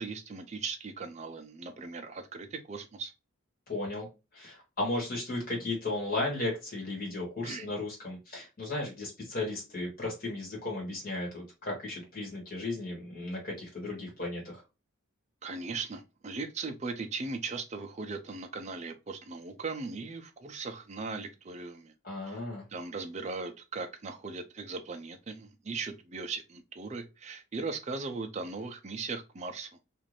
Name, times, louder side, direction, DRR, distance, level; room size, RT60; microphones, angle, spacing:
voice 1, 0.0-3.1 7.4-7.7 15.4-21.9 22.3-22.4 22.7-29.7, right 4 dB, 35° right, 0.4 m, -38 dB
voice 2, 3.7-4.1 4.3-14.6 22.0-22.6, left 2 dB, 45° left, 1.3 m, -35 dB
2.5 x 2.5 x 3.1 m
head